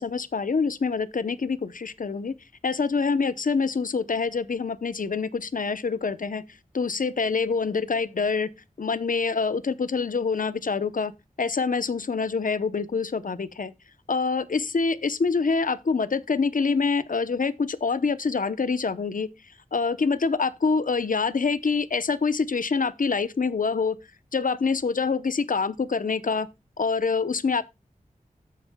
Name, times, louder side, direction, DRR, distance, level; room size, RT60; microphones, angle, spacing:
voice 1, 0.0-2.3 2.6-6.4 6.7-8.5 8.8-11.1 11.4-13.7 14.1-19.3 19.7-24.0 24.3-26.5 26.8-27.6, left 4 dB, 65° left, 0.7 m, -25 dB
13.5 x 8.1 x 2.2 m
wide cardioid pair, 60°, 15 cm